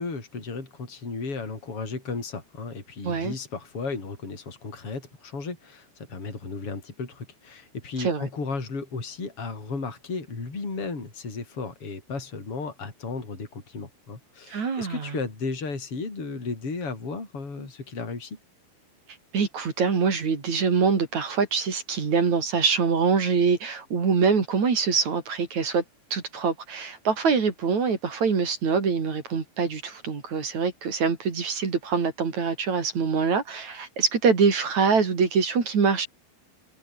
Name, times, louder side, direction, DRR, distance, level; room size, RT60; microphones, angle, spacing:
voice 1, 0.0-18.4, left 4 dB, 30° left, 6.5 m, -34 dB
voice 2, 3.0-3.3 8.0-8.3 14.5-15.2 19.3-25.8 26.1-36.1, right 5 dB, 45° right, 4.6 m, -24 dB
omnidirectional pair, 4.9 m